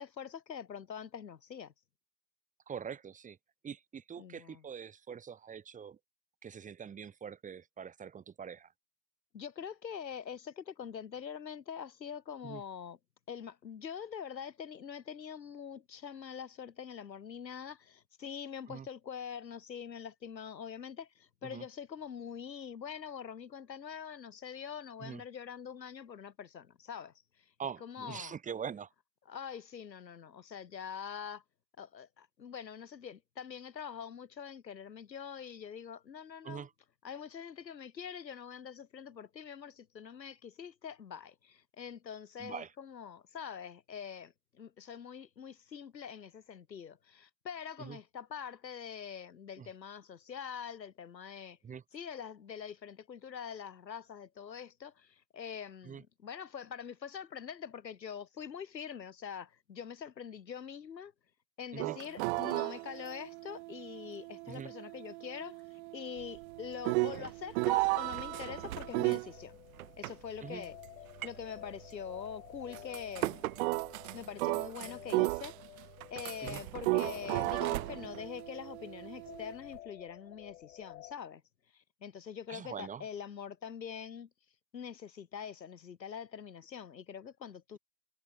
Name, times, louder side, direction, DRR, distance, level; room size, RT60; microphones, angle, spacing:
voice 1, 0.0-1.7 4.2-4.6 9.3-13.0 13.3-27.5 27.8-28.4 29.3-31.4 31.8-36.7 37.0-51.6 51.9-61.1 61.6-69.6 70.0-70.8 71.2-73.4 74.1-81.4 81.7-84.3 84.7-87.8, left 7 dB, 80° left, 5.5 m, -44 dB
voice 2, 2.7-3.4 3.6-6.0 6.4-8.7 12.4-12.6 18.7-18.9 21.4-21.6 25.0-25.2 27.6-28.9 36.4-36.7 42.4-42.7 47.8-48.0 49.6-49.7 51.6-51.8 55.8-56.0 61.7-62.0 64.5-64.7 67.1-67.3 70.4-70.6 76.4-76.6 82.5-83.0, right 7 dB, 15° right, 3.0 m, -43 dB
sound 1, 61.8-69.3 72.7-73.3 73.6-75.8 76.2-79.5, right 25 dB, 40° right, 1.5 m, -35 dB
sound 2, 66.2-79.8, right 15 dB, 55° right, 6.7 m, -45 dB
sound 3, 68.3-81.1, left 15 dB, 55° left, 2.3 m, -53 dB
hypercardioid pair, 120°, 50 cm